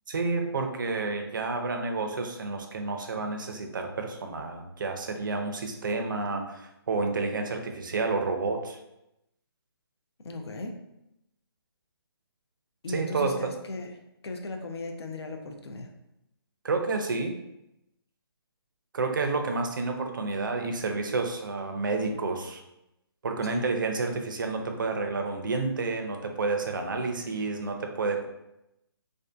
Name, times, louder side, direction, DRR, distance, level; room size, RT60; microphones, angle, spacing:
voice 1, 0.1-8.8 12.9-13.5 16.6-17.3 18.9-22.6 23.2-28.3, right 3 dB, 55° right, 5 dB, 0.4 m, -30 dB
voice 2, 10.2-10.8 12.8-13.9 14.2-15.9 23.4-23.6, left 2 dB, 85° left, 4 dB, 0.5 m, -37 dB
2.6 x 2.3 x 2.3 m, 0.87 s
hypercardioid pair, 165°, 13 cm